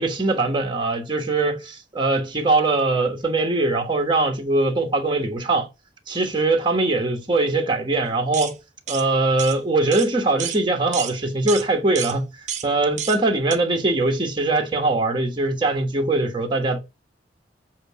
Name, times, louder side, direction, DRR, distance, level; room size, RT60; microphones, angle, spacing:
voice 1, 0.0-5.7 6.1-8.6 8.9-12.3 12.6-16.8, right 2 dB, 25° right, 1.2 m, -21 dB
sound 1, 8.3-8.5 8.9-9.0 9.4-9.6 9.9-10.1 10.4-10.6 10.9-11.2 11.5-11.7 12.0-12.2 12.5-12.7 13.0-13.2 13.5-13.6, right 9 dB, 45° right, 0.8 m, -30 dB
7.8 x 2.8 x 5.7 m
head